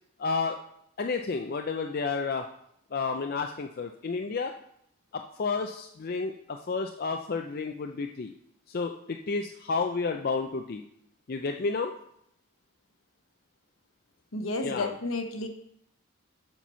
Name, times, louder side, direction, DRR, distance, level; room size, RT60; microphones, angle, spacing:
voice 1, 0.2-0.6 1.0-2.4 2.9-4.5 5.1-8.3 8.7-10.8 11.3-11.9 14.6-14.9, left 4 dB, 45° left, 4 dB, 0.4 m, -31 dB
voice 2, 14.3-15.5, left 2 dB, 70° left, 6 dB, 1.0 m, -31 dB
7.4 x 5.9 x 5.5 m, 0.72 s
head